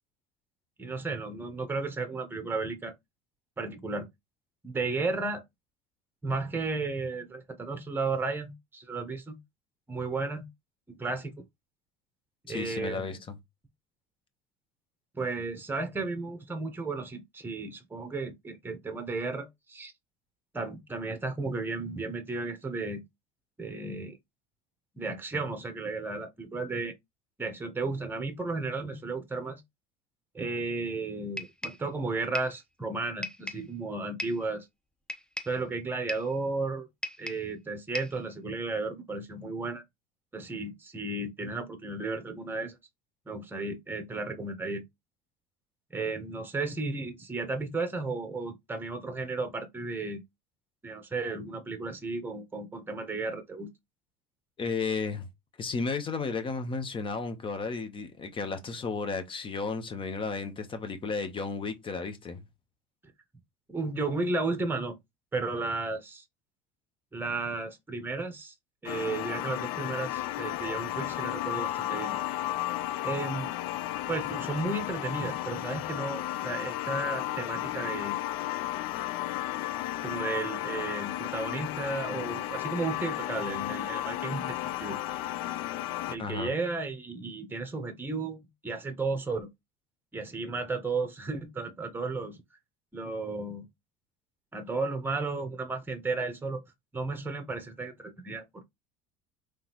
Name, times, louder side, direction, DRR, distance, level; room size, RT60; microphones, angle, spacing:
voice 1, 0.8-2.9 3.6-4.1 4.6-5.4 6.2-9.4 9.9-10.5 11.0-11.3 12.5-13.2 15.1-19.9 20.5-23.0 23.6-24.2 25.0-26.9 27.4-29.6 30.3-34.7 35.5-36.9 37.2-39.8 40.3-42.8 43.3-44.8 45.9-50.2 50.8-53.7 63.7-64.9 65.3-66.2 67.1-68.5 68.8-72.2 73.0-73.5 74.1-78.2 80.0-85.0 86.1-89.5 90.1-92.4 92.9-93.7 94.5-96.6 96.9-98.4, right 3 dB, 10° right, 1.1 m, -34 dB
voice 2, 12.5-13.2 54.6-55.2 55.6-62.4 86.2-86.5, left 4 dB, 30° left, 1.1 m, -33 dB
sound 1, 31.4-31.9 32.3-32.6 33.2-33.7 34.2-34.5 35.1-35.6 36.1-36.4 37.0-37.5 37.9-38.2, left 1 dB, 5° left, 0.6 m, -37 dB
sound 2, 68.8-86.2, left 14 dB, 70° left, 0.4 m, -33 dB
3.7 x 3.3 x 3.1 m
supercardioid pair, 95°, 17 cm